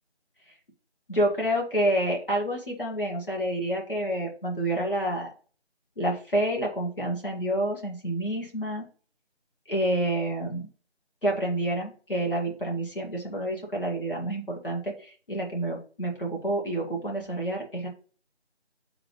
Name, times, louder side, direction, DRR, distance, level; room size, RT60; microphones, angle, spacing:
voice 1, 1.1-5.3 6.0-8.8 9.7-10.7 11.2-17.9, right 1 dB, 50° left, -2 dB, 1.9 m, -28 dB
7.7 x 3.8 x 3.2 m, 0.40 s
figure-of-eight pair, 170°, 34 cm